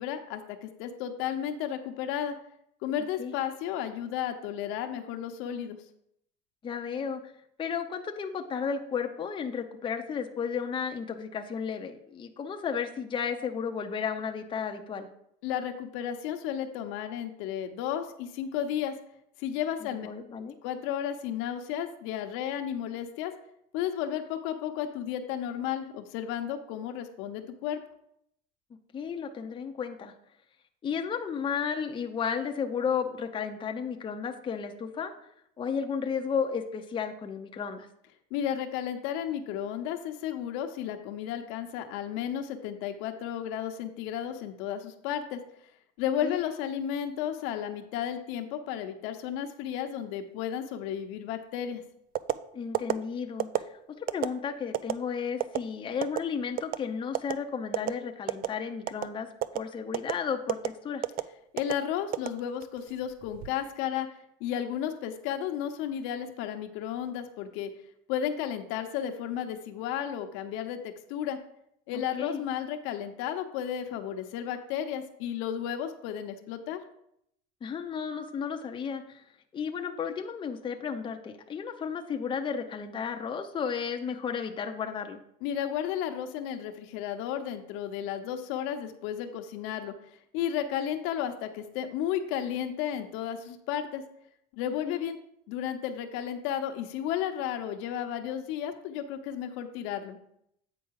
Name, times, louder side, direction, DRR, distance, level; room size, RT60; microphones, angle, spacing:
voice 1, 0.0-2.4 2.8-5.8 15.4-19.0 19.4-20.1 20.6-23.3 23.7-27.8 38.3-45.4 46.0-51.8 61.5-64.1 64.4-67.7 68.1-71.4 71.9-76.8 85.4-89.9 90.3-94.0 94.5-95.2 95.5-100.2, left 9 dB, 80° left, 6 dB, 0.9 m, -33 dB
voice 2, 6.6-7.2 7.6-15.1 19.8-20.6 28.9-30.1 30.8-35.1 35.6-37.9 46.2-46.4 52.5-59.3 59.5-61.1 71.9-72.4 77.6-79.2 79.5-85.2 94.9-95.0, left 6 dB, 25° left, 5 dB, 0.6 m, -33 dB
sound 1, 52.1-52.4 52.7-52.9 53.4-53.6 54.1-54.3 54.7-54.9 55.4-55.6 56.0-56.2 56.6-56.8 57.1-57.3 57.7-57.9 58.3-58.5 58.9-59.1 59.4-59.6 59.9-60.1 60.5-60.7 61.0-61.2 61.6-61.7 62.1-62.8 63.2-63.5, right 14 dB, 45° right, 0.4 m, -28 dB
8.5 x 4.6 x 4.7 m, 0.74 s
cardioid pair, 135°, 21 cm